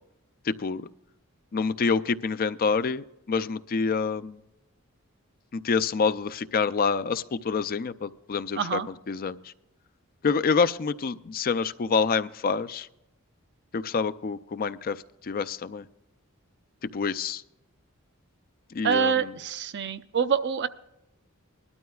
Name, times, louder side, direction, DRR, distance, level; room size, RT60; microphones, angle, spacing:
voice 1, 0.5-0.9 1.5-4.4 5.5-8.8 9.1-9.5 10.2-12.9 13.7-15.9 16.8-17.4 18.7-19.3, left 5 dB, 45° left, 13 dB, 0.4 m, -27 dB
voice 2, 8.6-8.9 18.8-20.7, right 7 dB, 55° right, 11 dB, 0.6 m, -26 dB
21.0 x 12.5 x 2.3 m, 0.87 s
head